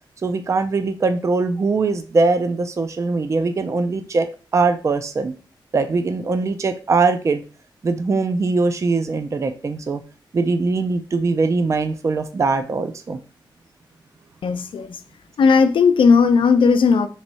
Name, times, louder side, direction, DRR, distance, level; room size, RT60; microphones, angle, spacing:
voice 1, 0.2-4.3 4.5-5.4 5.7-7.4 7.8-10.0 10.3-13.2, right 3 dB, 35° right, 0.4 m, -21 dB
voice 2, 14.4-15.0 15.4-17.1, left 5 dB, 80° left, 0.5 m, -15 dB
3.5 x 3.1 x 4.1 m
wide cardioid pair, 130°, 9 cm